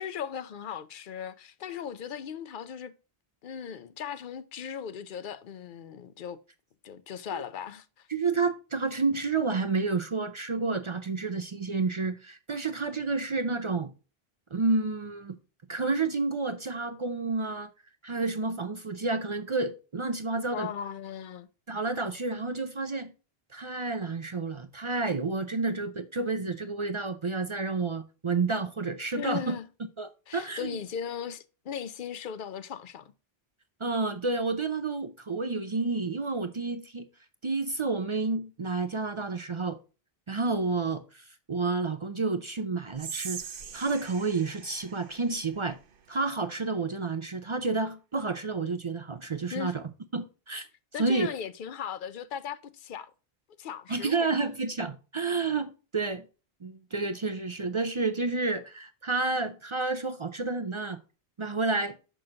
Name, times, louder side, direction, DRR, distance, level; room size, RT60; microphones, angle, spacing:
voice 1, 0.0-2.9 3.4-6.4 6.8-8.1 20.5-21.5 29.1-29.7 30.3-33.1 49.5-49.7 50.9-53.1 53.6-54.3, left 8 dB, 60° left, 0.7 m, -38 dB
voice 2, 8.1-13.9 14.5-15.4 15.7-17.7 18.0-20.7 21.7-23.1 23.5-29.6 30.0-30.8 33.8-37.1 37.4-39.8 40.3-45.8 46.1-49.8 50.1-50.7 51.0-51.3 53.9-56.3 56.6-61.0 61.4-62.0, right 3 dB, 40° right, 0.4 m, -30 dB
Whispering, 42.9-46.2, right 7 dB, 60° right, 0.9 m, -42 dB
6.4 x 6.2 x 2.8 m
omnidirectional pair, 1.1 m